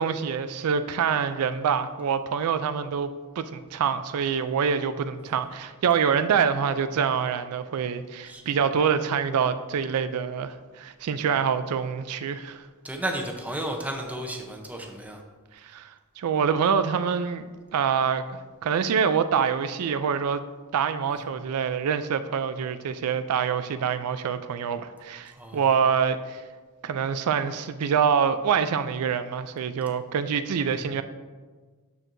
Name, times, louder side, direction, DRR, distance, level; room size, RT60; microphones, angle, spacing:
voice 1, 0.0-3.1 3.4-12.7 15.6-15.9 16.2-20.4 20.7-26.4 26.8-31.0, right 7 dB, 85° right, 0.4 m, -26 dB
voice 2, 12.8-15.2 25.3-25.6, right 1 dB, 5° right, 0.7 m, -33 dB
12.0 x 4.5 x 2.6 m
head